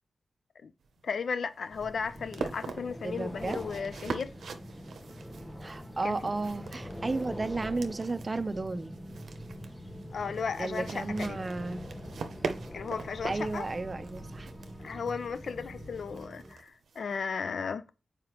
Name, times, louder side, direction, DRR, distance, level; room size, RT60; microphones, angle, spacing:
sound 1, 0.8-17.1, right 5 dB, 90° right, 0.7 m, -43 dB
voice 1, 1.0-4.3 6.0-6.2 10.1-11.4 12.7-13.7 14.8-17.9, left 5 dB, 75° left, 0.6 m, -35 dB
sound 2, 1.7-16.3, equal, 10° left, 1.0 m, -45 dB
sound 3, 2.1-16.5, right 1 dB, 15° right, 1.5 m, -49 dB
voice 2, 3.0-3.6 5.6-9.0 10.6-11.9 13.3-14.5, right 3 dB, 40° right, 0.6 m, -33 dB
7.5 x 4.9 x 3.0 m
cardioid pair, 65°, 0 cm